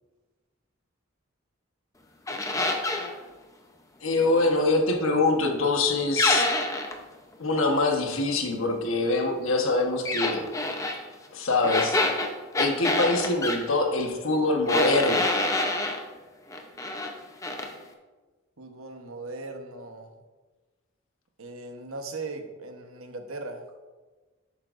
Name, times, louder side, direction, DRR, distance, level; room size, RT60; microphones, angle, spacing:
sound 1, 2.3-3.1 6.2-7.0 10.1-11.0 11.6-13.6 14.7-16.0 16.5-17.1 17.4-17.7, left 2 dB, 15° left, 0.7 m, -26 dB
voice 1, 4.0-6.5 7.4-10.5 11.3-12.0 12.5-15.4, left 2 dB, 80° left, 3 dB, 1.2 m, -24 dB
voice 2, 18.6-20.2 21.4-23.7, right 3 dB, 90° right, 4 dB, 1.1 m, -38 dB
11.5 x 8.6 x 2.6 m, 1.3 s
head